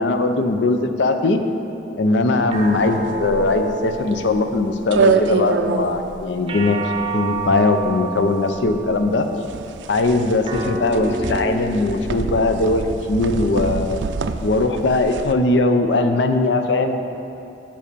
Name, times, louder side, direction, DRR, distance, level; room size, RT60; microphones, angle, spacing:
voice 1, 0.0-1.4 2.0-6.8 7.1-9.3 9.9-14.0 14.4-16.9, left 2 dB, 80° left, 7 dB, 0.6 m, -20 dB
sound 1, 2.5-5.1 6.5-9.0 10.4-13.1, right 2 dB, 30° right, 0.6 m, -30 dB
sound 2, 2.6-15.3, right 4 dB, 80° right, 0.4 m, -26 dB
7.5 x 5.6 x 6.8 m, 2.8 s
head